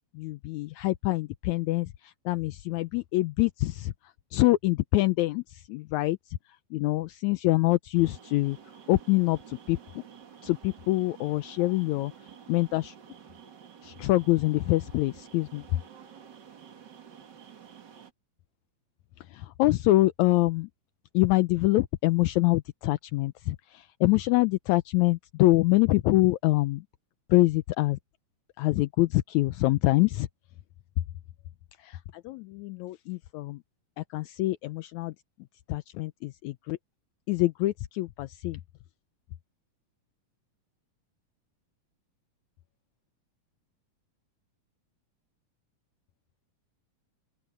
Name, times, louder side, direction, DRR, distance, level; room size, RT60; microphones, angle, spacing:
voice 1, 0.2-3.9 4.3-6.2 6.7-8.6 8.9-9.8 10.4-12.1 12.5-12.9 13.8-15.6 19.3-20.7 21.1-26.8 27.3-28.0 28.6-30.3 31.8-32.0 32.3-33.6 34.0-35.1 35.7-36.8 37.3-38.6, left 19 dB, 80° left, 1.7 m, -25 dB
sound 1, 7.9-18.1, right 8 dB, 45° right, 1.7 m, -50 dB
open air
omnidirectional pair, 3.8 m